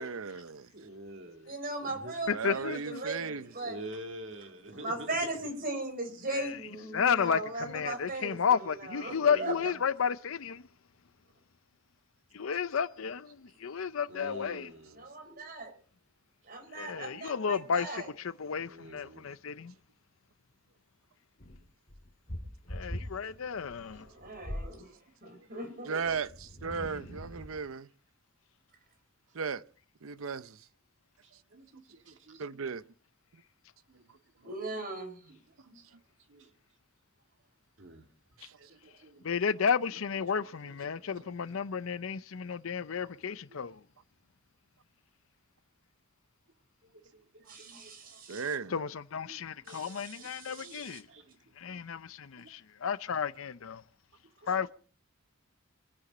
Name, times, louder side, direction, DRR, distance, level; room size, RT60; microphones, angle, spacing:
voice 1, 0.0-0.7 2.3-3.5 25.8-27.9 29.3-29.6 30.0-30.7 32.4-32.8 38.4-38.6 47.5-47.6 48.3-48.7, right 5 dB, 80° right, 0.7 m, -36 dB
voice 2, 0.7-1.5 1.8-2.1 3.6-5.3 8.9-9.7 14.1-15.1 18.6-19.2 23.9-24.0 31.2-32.4 33.9-34.0 34.4-34.5 35.7-35.8 36.3-36.5 37.8-38.1 38.6-39.2 40.6-41.4 46.9-48.2 49.3-51.4 51.6-51.8 52.4-52.5, right 1 dB, 60° right, 1.8 m, -48 dB
voice 3, 1.4-3.9 4.7-9.7 15.0-15.7 16.4-18.1 23.9-24.9 25.2-26.0 34.4-35.3 47.5-48.5 49.7-51.0, right 2 dB, 45° right, 4.8 m, -38 dB
voice 4, 2.3-3.0 6.3-6.6 6.9-10.6 12.3-14.7 16.7-19.7 22.7-24.1 39.2-43.8 48.7-51.1 51.6-53.8 54.5-54.7, left 6 dB, 80° left, 0.6 m, -32 dB
sound 1, 21.4-24.8 26.0-27.7, equal, 40° left, 2.2 m, -42 dB
25.0 x 9.9 x 4.2 m
head